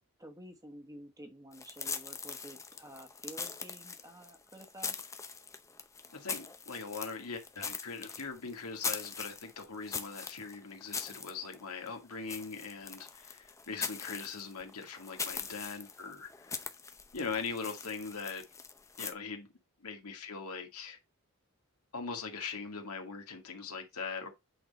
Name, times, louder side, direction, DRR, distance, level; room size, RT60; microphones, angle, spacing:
voice 1, 0.2-5.0, right 1 dB, 15° right, 1.2 m, -50 dB
sound 1, 1.5-19.1, left 5 dB, 15° left, 0.6 m, -42 dB
voice 2, 6.1-16.6 17.1-18.4 19.0-19.5 19.8-21.0 21.9-24.3, left 5 dB, 85° left, 1.9 m, -41 dB
8.3 x 3.9 x 4.1 m
head